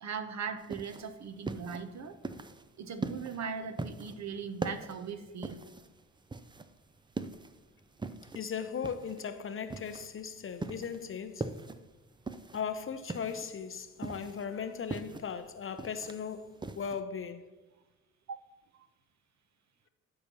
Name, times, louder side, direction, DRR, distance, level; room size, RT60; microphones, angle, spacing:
voice 1, 0.0-2.2 2.8-5.6 18.3-18.4, right 6 dB, 45° right, 0.8 m, -39 dB
sound 1, 0.6-17.0, right 3 dB, 10° right, 0.4 m, -41 dB
voice 2, 8.3-11.5 12.5-17.5, left 6 dB, 35° left, 0.6 m, -38 dB
12.5 x 5.5 x 2.9 m
hypercardioid pair, 45°, 40 cm